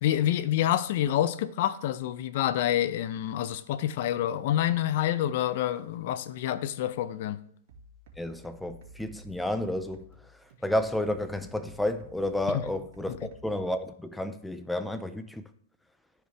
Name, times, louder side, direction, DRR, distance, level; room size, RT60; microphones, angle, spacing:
voice 1, 0.0-7.4 12.5-12.6, left 12 dB, 55° left, 0.5 m, -27 dB
sound 1, 7.7-13.7, equal, 60° right, 1.9 m, -53 dB
voice 2, 8.2-15.4, left 1 dB, 5° left, 0.4 m, -31 dB
13.0 x 4.8 x 3.4 m
hypercardioid pair, 145°, 0 cm